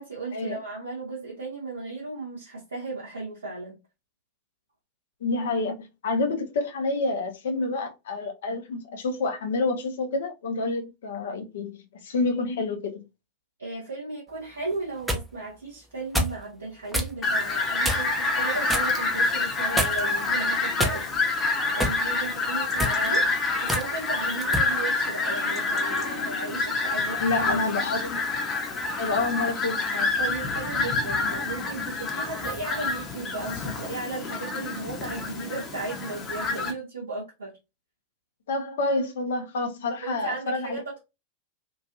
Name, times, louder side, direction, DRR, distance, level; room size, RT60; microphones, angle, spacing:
voice 1, 0.0-3.8 13.6-21.2 21.7-23.2 23.6-27.8 30.2-37.5 40.0-41.0, right 3 dB, 70° right, 0.9 m, -35 dB
voice 2, 5.2-11.8 12.0-13.0 22.9-23.2 27.2-28.2 29.0-30.1 38.5-40.8, left 3 dB, 60° left, 0.6 m, -28 dB
sound 1, 14.7-15.3 16.1-16.4 16.9-17.1 17.8-18.2 18.7-18.9 19.8-20.2 20.8-21.3 21.8-22.0 22.7-23.0 23.7-23.9 24.5-24.7, equal, 5° right, 0.6 m, -27 dB
Fowl, 17.2-36.7, left 3 dB, 25° left, 0.8 m, -27 dB
3.0 x 2.5 x 2.6 m
figure-of-eight pair, 90°, 0 cm